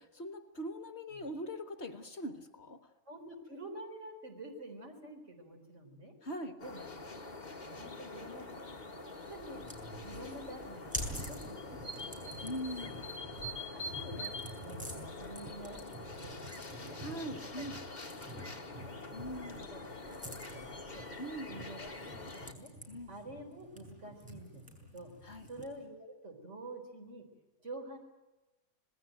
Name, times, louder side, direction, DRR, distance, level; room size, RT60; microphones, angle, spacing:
voice 1, 0.0-2.8 6.2-6.6 12.4-13.1 17.0-17.8 19.1-19.6 21.2-21.5 22.9-23.1 25.2-25.5, equal, 50° left, 8 dB, 1.7 m, -41 dB
voice 2, 3.1-6.1 6.6-6.9 7.5-9.0 9.3-12.4 13.4-14.3 14.6-17.0 17.6-17.7 18.6-19.0 19.3-21.1 21.5-21.9 22.3-22.7 23.1-25.1 25.4-27.3 27.6-28.0, right 1 dB, 55° right, 3 dB, 4.5 m, -49 dB
sound 1, 6.6-22.5, left 2 dB, 30° left, 1.8 m, -45 dB
sound 2, 9.2-25.8, equal, 5° right, 6.5 m, -48 dB
27.0 x 20.0 x 9.1 m, 1.1 s
omnidirectional pair, 1.5 m